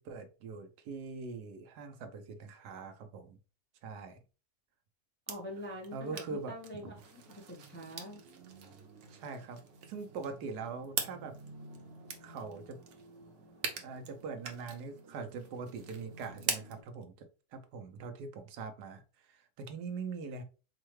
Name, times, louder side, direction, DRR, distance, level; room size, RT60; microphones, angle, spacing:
voice 1, 0.0-3.4 3.8-4.2 5.9-6.5 6.8-6.9 9.1-11.4 12.2-12.8 13.8-20.4, right 4 dB, 90° right, 6 dB, 1.3 m, -43 dB
voice 2, 5.3-7.2 7.5-8.2, equal, 15° left, -1 dB, 0.3 m, -44 dB
sound 1, 5.3-16.8, right 6 dB, 60° right, 0.9 m, -43 dB
4.6 x 2.2 x 3.1 m, 0.33 s
omnidirectional pair, 1.7 m